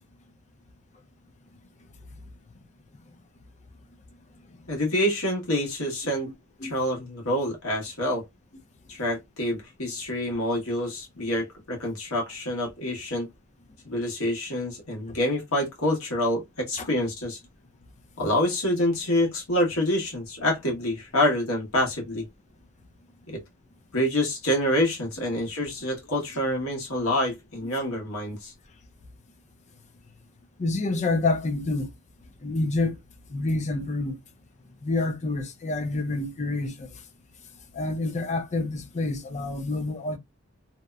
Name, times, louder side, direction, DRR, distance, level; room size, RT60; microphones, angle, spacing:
voice 1, 4.7-6.3 6.6-8.2 8.9-13.3 13.8-17.4 18.2-22.2 23.3-23.4 23.9-28.5, left 1 dB, 80° left, 1.2 m, -27 dB
voice 2, 30.6-31.9 32.4-32.9 33.3-34.2 34.8-36.9 37.7-40.2, left 2 dB, 35° left, 0.4 m, -27 dB
2.8 x 2.0 x 2.3 m
head